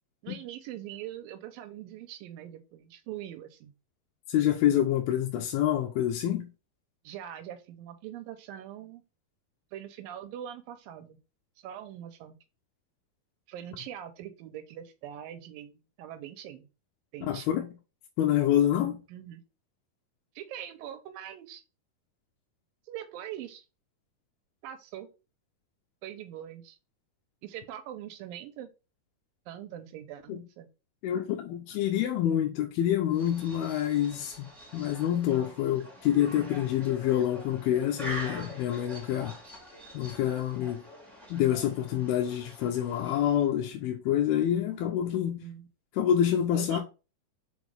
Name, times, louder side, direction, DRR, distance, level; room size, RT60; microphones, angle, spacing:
voice 1, 0.2-3.7 7.0-9.0 9.7-11.2 11.6-12.4 13.5-16.7 17.1-17.6 19.1-19.4 20.4-21.6 22.9-23.6 24.6-25.1 26.0-26.8 27.4-28.7 29.5-30.7 45.1-45.7 46.5-46.8, right 11 dB, 75° right, 2.4 m, -42 dB
voice 2, 4.3-6.5 17.3-17.7 18.2-19.0 30.3-30.4 31.0-34.5 34.7-39.4 39.9-40.8 41.3-45.3 46.0-46.8, left 11 dB, 90° left, 2.6 m, -27 dB
sound 1, 33.1-43.5, right 1 dB, ahead, 2.0 m, -45 dB
6.3 x 4.5 x 3.4 m
omnidirectional pair, 4.5 m